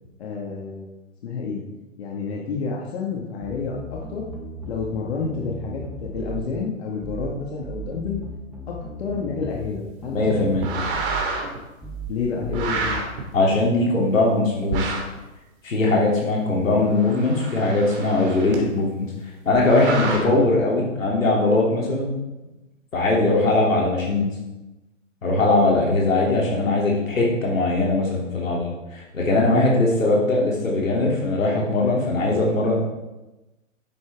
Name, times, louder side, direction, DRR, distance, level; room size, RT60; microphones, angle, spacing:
voice 1, 0.2-0.9 1.2-1.6 2.0-4.2 4.7-8.2 8.7-10.4 12.1-13.0 20.2-20.4 23.4-23.6, left 5 dB, 50° left, -2 dB, 2.2 m, -29 dB
sound 1, 3.4-4.9 5.2-6.5 7.0-7.3 7.6-9.7 10.0-11.3 11.8-12.1 12.4-13.0, right 2 dB, 5° right, 1.3 m, -36 dB
voice 2, 10.1-10.6 13.3-14.8 15.6-19.1 19.4-22.2 22.9-24.3 25.2-32.8, left 2 dB, 75° left, -2 dB, 3.2 m, -20 dB
sound 2, 10.5-11.6 12.5-13.2 14.7-15.2 16.7-18.6 19.5-20.2, right 4 dB, 40° right, 2.7 m, -29 dB
11.0 x 9.8 x 3.7 m, 1.0 s
figure-of-eight pair, 130°, 40 cm